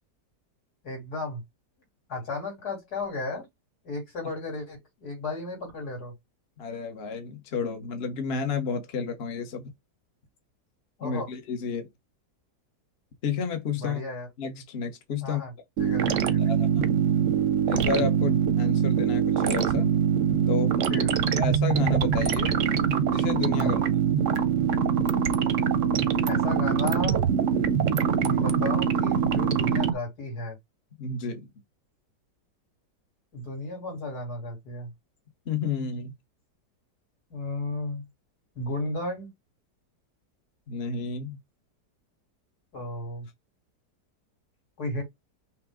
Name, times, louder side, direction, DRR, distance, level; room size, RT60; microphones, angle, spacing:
voice 1, 0.8-1.4 2.1-3.4 3.8-6.1 11.0-11.3 13.7-14.3 15.2-15.5 15.8-16.4 20.9-21.1 23.5-23.7 26.2-27.2 27.8-30.6 33.3-34.9 37.3-38.1 38.5-39.3 42.7-43.3 44.8-45.0, left 2 dB, 65° left, 3.2 m, -34 dB
voice 2, 6.6-9.7 11.0-11.9 13.2-14.0 14.4-15.4 16.4-16.9 17.7-19.9 20.5-20.8 21.3-22.6 23.1-23.8 31.0-31.5 35.5-36.1 40.7-41.4, left 5 dB, 45° left, 1.0 m, -31 dB
sound 1, 15.8-29.9, right 8 dB, 60° right, 0.9 m, -24 dB
5.8 x 2.1 x 3.6 m
omnidirectional pair, 1.8 m